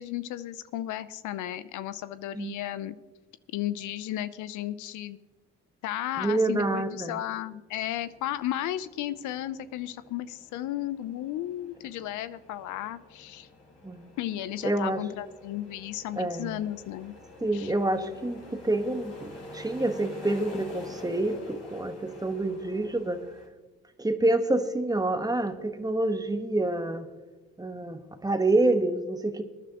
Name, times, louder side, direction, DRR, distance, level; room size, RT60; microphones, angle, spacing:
voice 1, 0.0-3.0 3.5-5.2 5.8-13.5 14.2-17.1 17.5-17.7, left 13 dB, 75° left, 14 dB, 0.6 m, -34 dB
voice 2, 6.2-7.2 13.8-14.0 14.6-15.0 16.2-16.6 17.4-23.2 24.0-27.1 27.6-29.4, right 2 dB, 10° right, 8 dB, 1.2 m, -27 dB
sound 1, 7.7-23.5, left 2 dB, 55° left, 4.0 m, -47 dB
21.5 x 10.0 x 2.9 m, 1.2 s
supercardioid pair, 60°, 30 cm